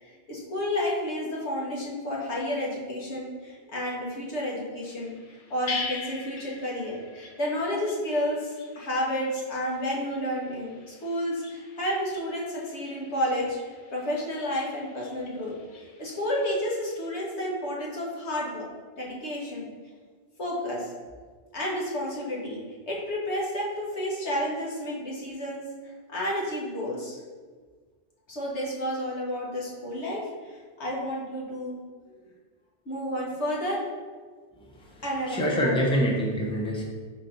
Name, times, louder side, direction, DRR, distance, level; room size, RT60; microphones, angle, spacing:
voice 1, 0.0-13.6 13.9-18.7 19.0-19.7 20.4-20.9 21.5-22.6 22.9-27.2 28.3-31.8 32.8-33.8 35.0-35.8, equal, 80° left, -4 dB, 1.7 m, -31 dB
sound 1, 4.8-17.1, left 4 dB, 40° left, 0.6 m, -43 dB
voice 2, 35.3-36.8, equal, 5° left, -3 dB, 0.8 m, -25 dB
4.5 x 4.1 x 5.3 m, 1.5 s
omnidirectional pair, 1.1 m